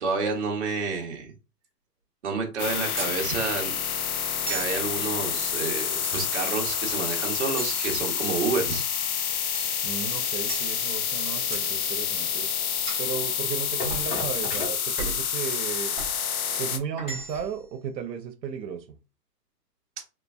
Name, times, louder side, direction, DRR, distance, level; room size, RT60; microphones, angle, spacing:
voice 1, 0.0-1.3 2.2-3.7 4.5-8.8, right 4 dB, 45° right, 0.9 m, -29 dB
sound 1, 2.6-16.8, left 7 dB, 60° left, 0.6 m, -28 dB
sound 2, 3.0-3.2 4.5-4.8 6.0-6.5 7.6-8.5 9.5-9.8 10.5-10.7 11.5-11.7 12.9-13.1 13.9-14.1 15.0-15.3 16.0-16.2 17.0-17.6, right 3 dB, 5° left, 0.8 m, -36 dB
sound 3, 7.7-14.7, left 2 dB, 40° left, 1.2 m, -40 dB
voice 2, 9.8-12.5 13.0-16.0 16.6-19.0, right 7 dB, 85° right, 0.7 m, -35 dB
3.1 x 2.4 x 2.3 m
hypercardioid pair, 170°, 49 cm